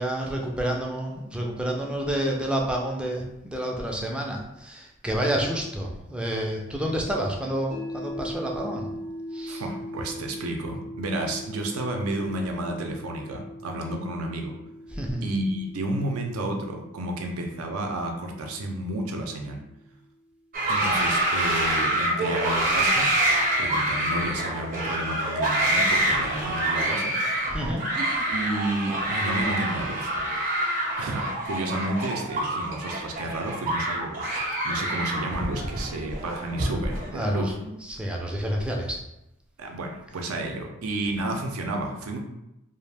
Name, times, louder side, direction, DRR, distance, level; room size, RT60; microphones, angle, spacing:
voice 1, 0.0-8.9 9.3-9.6 14.9-15.3 27.5-27.8 37.1-39.0, right 1 dB, 5° right, 0 dB, 0.3 m, -29 dB
sound 1, 7.7-19.8, equal, 80° left, 0.7 m, -40 dB
voice 2, 9.5-14.6 15.2-19.6 20.7-23.2 23.6-27.2 27.9-30.1 31.0-37.5 39.6-42.2, right 1 dB, 75° right, 3 dB, 0.5 m, -31 dB
sound 2, 20.5-37.1, right 1 dB, 45° right, 0.7 m, -26 dB
2.4 x 2.0 x 3.3 m, 0.87 s
head